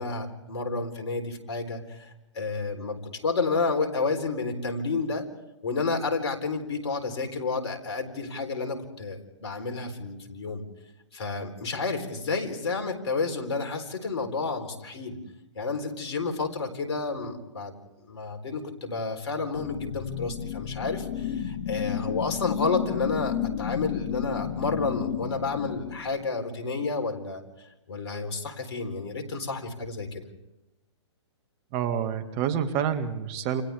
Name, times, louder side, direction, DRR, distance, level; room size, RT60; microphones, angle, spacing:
voice 1, 0.0-5.3 5.6-10.6 11.1-15.2 15.5-17.7 18.1-30.2, left 4 dB, 65° left, 5 dB, 4.1 m, -30 dB
sound 1, 19.5-26.3, left 9 dB, 50° left, 1.4 m, -32 dB
voice 2, 31.7-33.6, right 8 dB, 35° right, 8 dB, 2.1 m, -28 dB
29.5 x 27.0 x 3.6 m, 0.97 s
hypercardioid pair, 130°, 15 cm